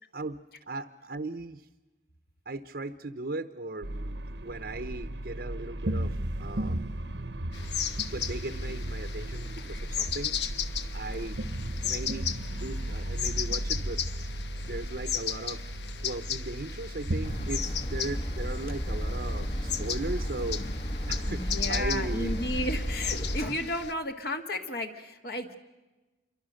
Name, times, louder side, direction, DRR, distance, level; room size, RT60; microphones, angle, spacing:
voice 1, 0.1-1.7 2.5-6.9 7.9-10.3 10.9-11.4 11.8-14.3 14.6-15.7 16.0-20.7 21.1-22.4, right 2 dB, 60° right, 8 dB, 0.9 m, -38 dB
sound 1, 3.8-17.5, right 1 dB, 80° right, 1.1 m, -35 dB
sound 2, 7.5-23.9, left 8 dB, 75° left, 1.1 m, -36 dB
sound 3, 17.2-23.5, equal, 35° left, 1.2 m, -32 dB
voice 2, 21.3-25.6, left 1 dB, 55° left, 5 dB, 1.8 m, -33 dB
28.0 x 23.5 x 6.5 m, 1.1 s
head